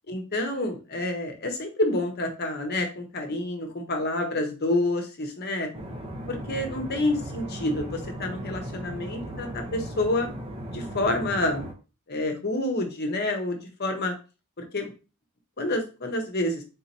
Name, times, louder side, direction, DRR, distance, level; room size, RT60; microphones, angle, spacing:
voice 1, 0.1-5.7 6.3-10.3 10.7-11.6 12.1-14.1 14.7-14.9 15.6-16.6, left 1 dB, 45° left, 5 dB, 0.9 m, -28 dB
sound 1, 5.7-11.7, right 1 dB, 25° right, 0.7 m, -37 dB
3.7 x 2.8 x 4.2 m, 0.32 s
head